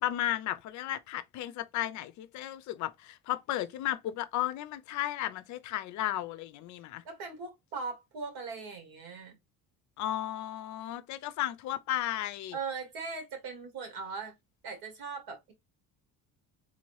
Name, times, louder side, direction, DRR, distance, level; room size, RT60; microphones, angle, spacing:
voice 1, 0.0-7.0 10.0-12.6, left 13 dB, 55° left, 0.5 m, -34 dB
voice 2, 7.0-9.4 12.5-14.4 14.6-15.5, right 4 dB, 80° right, 1.8 m, -39 dB
3.8 x 2.7 x 3.0 m
cardioid pair, 180°, 36 cm